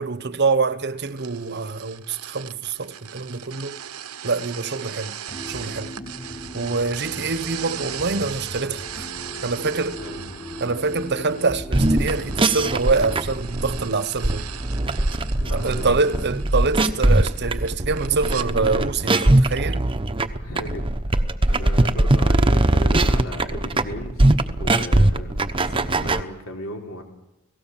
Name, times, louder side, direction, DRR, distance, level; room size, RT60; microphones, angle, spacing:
voice 1, 0.0-3.8 4.2-5.2 5.5-5.9 6.5-9.1 9.4-10.0 10.6-14.5 15.5-19.9, right 4 dB, 50° right, 1.1 m, -25 dB
sound 1, 1.0-18.5, right 10 dB, 85° right, 1.2 m, -38 dB
sound 2, 5.3-13.3, equal, 30° left, 3.7 m, -37 dB
sound 3, 11.6-26.2, right 1 dB, 25° right, 1.0 m, -21 dB
voice 2, 15.3-16.2 20.3-21.2 21.5-24.3 24.6-25.3 25.6-27.0, left 1 dB, 70° left, 3.9 m, -36 dB
29.5 x 18.5 x 7.4 m
head